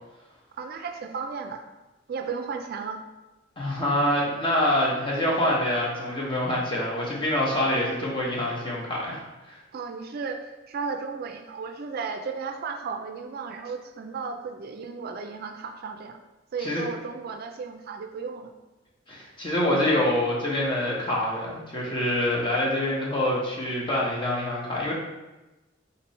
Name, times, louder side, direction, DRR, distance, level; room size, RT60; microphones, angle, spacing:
voice 1, 0.5-1.6 2.1-3.0 9.7-16.2 16.5-18.5, right 5 dB, 55° right, 6 dB, 0.3 m, -34 dB
voice 2, 3.6-9.6 16.6-16.8 19.1-24.9, left 1 dB, 25° left, -4 dB, 1.0 m, -26 dB
4.0 x 3.0 x 4.1 m, 1.1 s
head